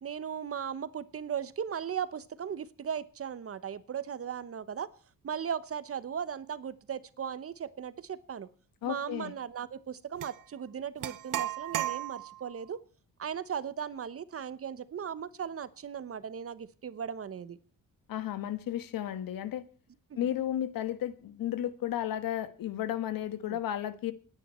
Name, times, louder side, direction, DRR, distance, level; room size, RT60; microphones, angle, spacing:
voice 1, 0.0-4.9 5.2-8.5 8.8-12.8 13.2-17.6 23.5-23.6, right 8 dB, 40° right, 16 dB, 1.0 m, -37 dB
voice 2, 8.8-9.3 18.1-19.6 20.2-24.1, left 11 dB, 85° left, 13 dB, 1.5 m, -33 dB
sound 1, 10.2-10.4 11.0-12.5, right 13 dB, 65° right, 1.0 m, -34 dB
28.0 x 10.0 x 4.4 m, 0.37 s
cardioid pair, 120°, 34 cm